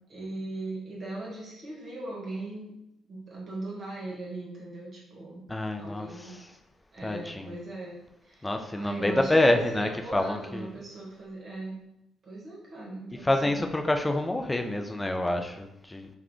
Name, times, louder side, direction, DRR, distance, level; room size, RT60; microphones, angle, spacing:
voice 1, 0.1-2.7 3.1-5.4 5.8-6.4 6.9-8.0 8.2-11.8 12.2-13.6, right 2 dB, 55° right, -4 dB, 0.9 m, -39 dB
voice 2, 5.5-6.1 7.0-7.5 8.4-10.7 13.2-16.1, left 1 dB, 20° left, 5 dB, 0.4 m, -27 dB
2.3 x 2.2 x 3.6 m, 0.84 s
hypercardioid pair, 50°, 0 cm